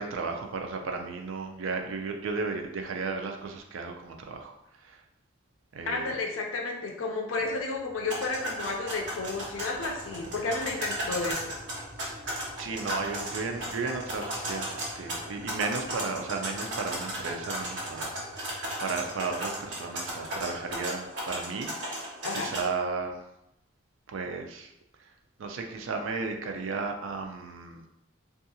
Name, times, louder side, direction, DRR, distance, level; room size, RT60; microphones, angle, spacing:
voice 1, 0.0-4.5 4.8-5.0 5.7-6.2 12.6-23.2 24.1-24.7 25.4-27.8, right 4 dB, 80° right, 3 dB, 0.4 m, -34 dB
voice 2, 5.9-11.5 22.2-22.5, left 3 dB, 80° left, 1 dB, 0.4 m, -32 dB
sound 1, 7.6-20.8, equal, 30° left, 1.4 m, -51 dB
sound 2, 8.0-22.6, right 1 dB, 60° right, 0.8 m, -36 dB
2.7 x 2.4 x 2.7 m, 0.81 s
head